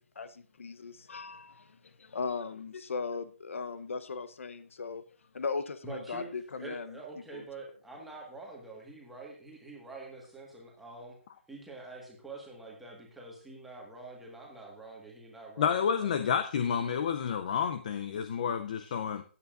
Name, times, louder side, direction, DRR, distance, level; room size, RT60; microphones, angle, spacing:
voice 1, 0.2-5.0 5.3-7.0 7.3-7.5, left 4 dB, 75° left, 13 dB, 0.8 m, -38 dB
voice 2, 5.8-6.3 6.6-11.2 11.5-16.2, right 3 dB, ahead, -2 dB, 1.5 m, -46 dB
voice 3, 15.6-19.2, left 7 dB, 35° left, 9 dB, 0.5 m, -30 dB
16.0 x 8.4 x 2.5 m, 0.40 s
hypercardioid pair, 170°, 7 cm